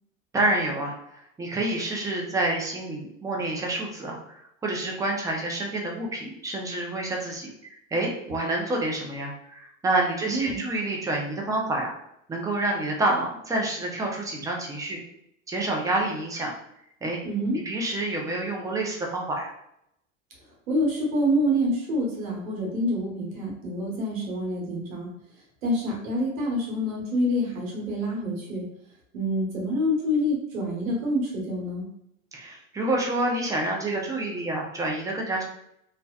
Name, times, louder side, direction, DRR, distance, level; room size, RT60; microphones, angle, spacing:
voice 1, 0.3-0.9 1.4-4.3 4.6-11.9 12.3-15.0 15.5-16.5 17.0-17.2 17.7-19.5 32.3-35.4, right 2 dB, 10° right, -1 dB, 0.3 m, -28 dB
voice 2, 10.2-10.6 17.2-17.6 20.7-25.1 25.6-28.7 29.1-31.9, equal, 85° right, -3 dB, 1.2 m, -27 dB
2.7 x 2.0 x 2.3 m, 0.75 s
hypercardioid pair, 100°, 39 cm